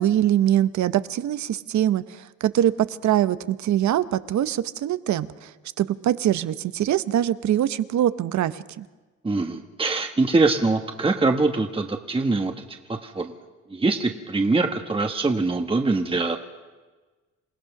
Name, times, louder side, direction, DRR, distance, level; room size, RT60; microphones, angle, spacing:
voice 1, 0.0-8.8, right 11 dB, 70° right, 14 dB, 0.9 m, -23 dB
voice 2, 9.2-12.6 12.9-13.3 13.7-16.4, right 3 dB, 20° right, 4 dB, 1.4 m, -23 dB
27.5 x 17.0 x 6.0 m, 1.3 s
cardioid pair, 90°, 30 cm